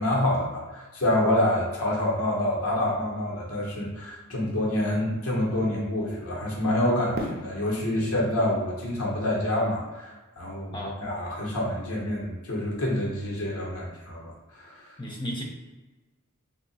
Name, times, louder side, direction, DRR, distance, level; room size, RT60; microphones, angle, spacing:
voice 1, 0.0-14.9, left 1 dB, 85° left, -3 dB, 1.1 m, -27 dB
Fireworks, 7.1-10.2, equal, 45° right, 0.6 m, -39 dB
voice 2, 15.0-15.4, equal, 20° left, -1 dB, 0.6 m, -33 dB
2.9 x 2.4 x 3.9 m, 1.2 s
head